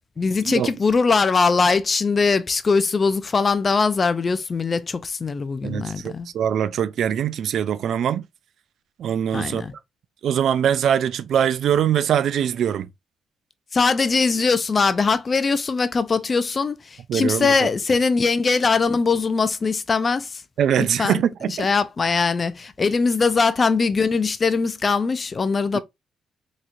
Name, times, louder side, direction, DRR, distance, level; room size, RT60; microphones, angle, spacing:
voice 1, 0.2-6.3 9.3-9.7 13.7-20.4 20.8-21.2 21.5-25.8, left 4 dB, 35° left, 0.5 m, -21 dB
voice 2, 5.6-8.2 9.0-9.6 10.2-12.9 17.1-17.5 20.6-21.7 25.7-25.8, right 9 dB, 70° right, 0.4 m, -22 dB
4.2 x 3.0 x 2.5 m
cardioid pair, 90°, 0 cm